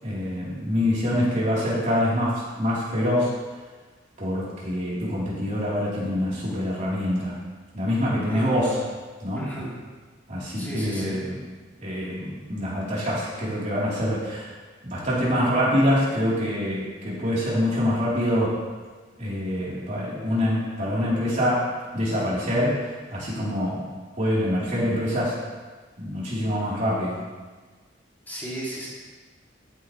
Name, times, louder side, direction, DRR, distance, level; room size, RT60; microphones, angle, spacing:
voice 1, 0.0-3.3 4.2-7.4 7.7-8.8 9.2-9.5 10.3-11.4 11.8-14.5 14.8-18.6 19.2-23.9 24.2-25.4 26.0-27.2, equal, 40° right, -7 dB, 4.1 m, -25 dB
voice 2, 8.3-8.8 9.3-9.7 10.6-11.2 28.3-28.9, right 1 dB, 10° left, -6 dB, 3.0 m, -34 dB
14.0 x 9.3 x 3.4 m, 1.3 s
head